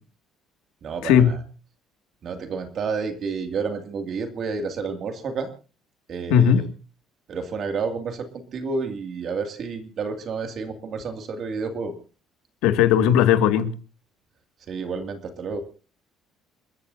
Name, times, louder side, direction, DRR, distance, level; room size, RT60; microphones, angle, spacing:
voice 1, 0.8-1.4 2.2-5.5 6.1-6.7 7.3-11.9 14.7-15.6, right 4 dB, 45° right, 2.4 m, -30 dB
voice 2, 6.3-6.7 12.6-13.7, left 9 dB, 90° left, 2.1 m, -17 dB
29.0 x 14.0 x 2.7 m
cardioid pair, 150°, 0 cm